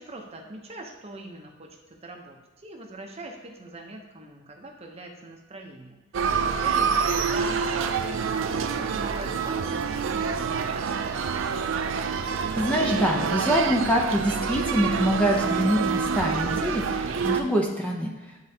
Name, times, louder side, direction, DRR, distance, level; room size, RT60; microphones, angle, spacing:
voice 1, 0.0-11.3, right 2 dB, 30° right, 2 dB, 0.7 m, -42 dB
sound 1, 6.1-17.4, right 6 dB, 75° right, 0.4 m, -27 dB
voice 2, 12.6-18.1, equal, 5° left, -1 dB, 0.6 m, -25 dB
9.6 x 3.8 x 2.8 m, 1.2 s
head